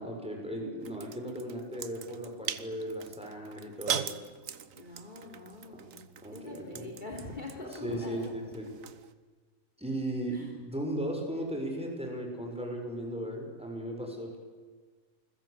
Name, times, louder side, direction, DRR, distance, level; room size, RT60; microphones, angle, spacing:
voice 1, 0.0-4.2 5.8-5.9 6.2-6.9 7.7-8.7 9.8-14.4, right 1 dB, 5° right, 1 dB, 6.5 m, -36 dB
sound 1, 0.8-9.1, right 8 dB, 80° right, 1.5 m, -41 dB
voice 2, 4.8-8.4 10.3-10.5, left 2 dB, 35° left, 2 dB, 3.5 m, -44 dB
28.5 x 21.0 x 8.4 m, 1.4 s
omnidirectional pair, 1.4 m